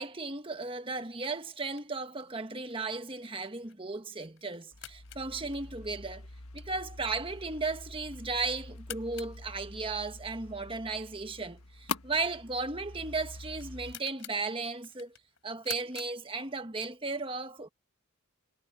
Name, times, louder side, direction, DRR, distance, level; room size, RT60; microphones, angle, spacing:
voice 1, 0.0-6.2 6.5-15.1 15.4-17.7, right 3 dB, 25° right, 1.4 m, -35 dB
sound 1, 1.3-16.9, left 12 dB, 60° left, 4.3 m, -52 dB
sound 2, 4.7-13.9, left 3 dB, 85° left, 1.6 m, -45 dB
head